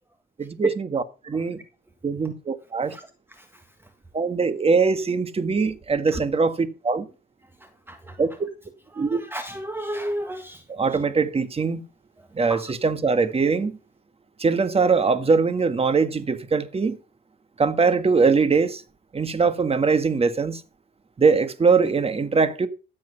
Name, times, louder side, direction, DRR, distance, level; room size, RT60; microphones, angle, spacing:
voice 1, 0.4-1.6 2.0-3.0 4.1-7.1 8.2-8.3 9.0-9.2 10.7-11.8 12.3-13.8 14.4-17.0 17.6-18.8 19.1-20.6 21.2-22.7, right 4 dB, 30° right, 1.6 m, -22 dB
voice 2, 7.9-8.2 8.9-10.6 12.5-12.7, right 1 dB, 10° right, 1.5 m, -33 dB
14.0 x 7.7 x 5.7 m
cardioid pair, 90°, 20 cm